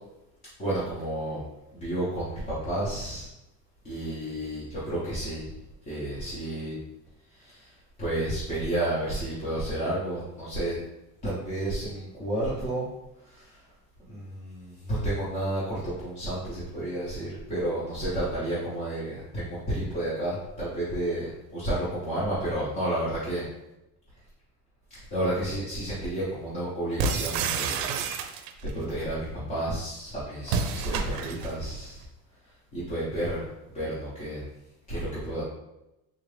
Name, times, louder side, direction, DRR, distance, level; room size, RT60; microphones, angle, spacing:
voice 1, 0.6-1.4 1.7-3.3 3.8-5.5 5.9-6.8 7.4-7.7 8.0-10.8 11.2-12.9 13.3-13.6 14.1-23.5 25.1-27.8 28.2-28.4 28.7-32.0 32.7-33.4 33.7-34.4 34.9-35.4, right 1 dB, 15° left, -10 dB, 0.6 m, -31 dB
sound 1, 27.0-28.7 30.4-31.6, right 5 dB, 80° right, 0.6 m, -29 dB
3.7 x 2.5 x 3.2 m, 0.92 s
cardioid pair, 180°, 45 cm